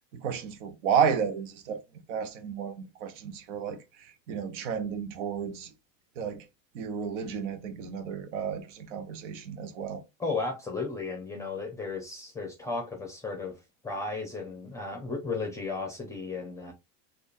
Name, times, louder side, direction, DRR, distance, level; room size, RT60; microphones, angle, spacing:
voice 1, 0.1-1.8 2.1-5.7 6.2-6.4 6.7-10.0, right 7 dB, 80° right, 0.9 m, -32 dB
voice 2, 10.2-13.6 13.8-16.7, left 3 dB, 10° left, 0.8 m, -34 dB
3.7 x 2.6 x 2.5 m
supercardioid pair, 120°, 36 cm